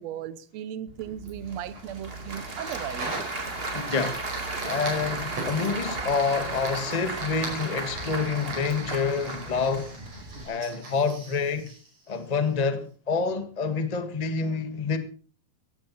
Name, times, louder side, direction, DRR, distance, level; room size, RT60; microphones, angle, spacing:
voice 1, 0.0-3.2, right 10 dB, 65° right, 1.8 m, -36 dB
Applause / Crowd, 0.9-10.4, right 2 dB, 20° right, 1.7 m, -35 dB
Fire, 1.3-12.6, right 2 dB, 45° right, 6.4 m, -41 dB
voice 2, 3.7-4.3 4.5-9.9 10.4-11.7 12.1-15.0, left 5 dB, 70° left, 0.3 m, -27 dB
17.0 x 16.0 x 4.2 m
omnidirectional pair, 4.1 m